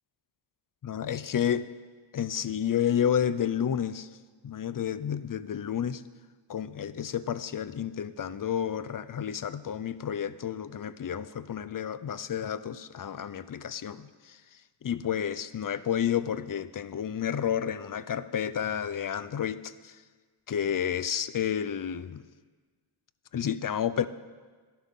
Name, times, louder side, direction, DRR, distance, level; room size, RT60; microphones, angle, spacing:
voice 1, 0.8-1.7 2.1-4.1 4.4-6.0 6.5-14.4 14.8-20.0 20.5-22.3 23.3-24.1, left 9 dB, 45° left, 15 dB, 0.5 m, -30 dB
11.5 x 11.5 x 3.7 m, 1.4 s
cardioid pair, 50°, 49 cm